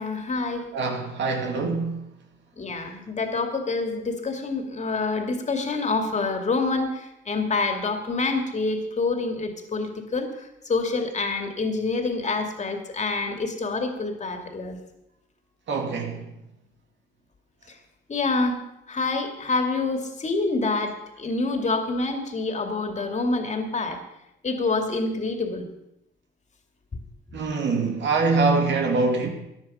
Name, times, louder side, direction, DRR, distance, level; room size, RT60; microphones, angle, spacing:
voice 1, 0.0-0.7 2.6-10.3 10.6-14.8 18.1-18.6 18.9-24.0 24.4-25.6, left 3 dB, 35° left, 2.5 m, -27 dB
voice 2, 0.7-2.0 15.7-16.3 27.3-29.3, right 3 dB, 65° right, 2.4 m, -24 dB
15.0 x 10.5 x 5.7 m
cardioid pair, 90°, 20 cm